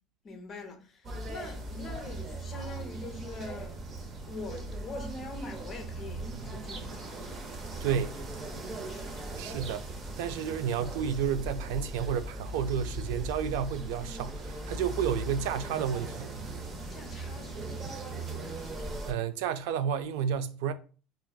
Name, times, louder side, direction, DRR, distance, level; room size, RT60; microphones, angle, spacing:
voice 1, 0.2-3.8 4.3-7.9 8.4-9.5 16.9-18.9, left 3 dB, 30° left, 0.7 m, -45 dB
sound 1, 1.0-19.1, right 1 dB, 25° right, 0.5 m, -39 dB
voice 2, 7.8-8.1 9.4-9.9 10.2-16.3 19.1-20.7, right 8 dB, 80° right, 0.3 m, -31 dB
4.4 x 2.5 x 2.2 m
cardioid pair, 150°, 0 cm